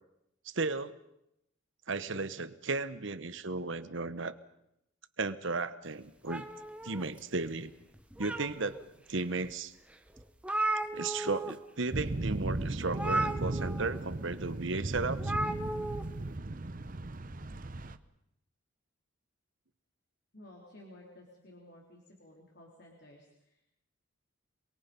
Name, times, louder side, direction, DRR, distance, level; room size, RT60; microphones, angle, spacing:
voice 1, 0.5-1.0 1.9-4.3 5.2-6.4 6.8-7.7 8.2-8.8 9.1-9.7 10.9-15.3, right 3 dB, 65° right, 14 dB, 1.1 m, -34 dB
sound 1, 6.3-7.5 7.9-8.8 9.4-9.5 9.9-10.0 10.2-11.5 11.8-12.0 12.9-14.0 15.2-16.0, right 2 dB, 5° right, 1.3 m, -35 dB
sound 2, 11.9-18.0, right 2 dB, 40° right, 0.9 m, -36 dB
voice 2, 20.3-23.7, left 1 dB, 55° left, -1 dB, 3.9 m, -55 dB
27.5 x 22.5 x 5.4 m, 0.80 s
head